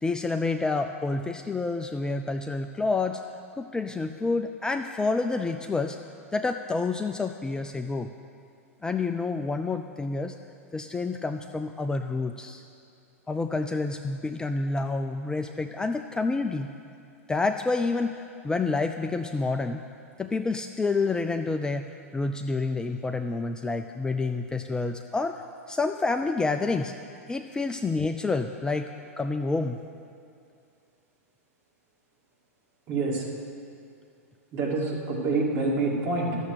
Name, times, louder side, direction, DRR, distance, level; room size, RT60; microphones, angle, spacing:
voice 1, 0.0-3.2 3.6-6.0 6.3-8.1 8.8-10.4 10.7-12.7 13.3-16.7 17.3-19.8 20.2-25.4 25.7-26.9 27.3-29.8, left 3 dB, 10° left, 6 dB, 0.3 m, -28 dB
voice 2, 32.9-33.3 34.5-36.4, right 3 dB, 40° right, -2 dB, 2.2 m, -27 dB
12.0 x 7.0 x 6.6 m, 2.4 s
figure-of-eight pair, 95°, 8 cm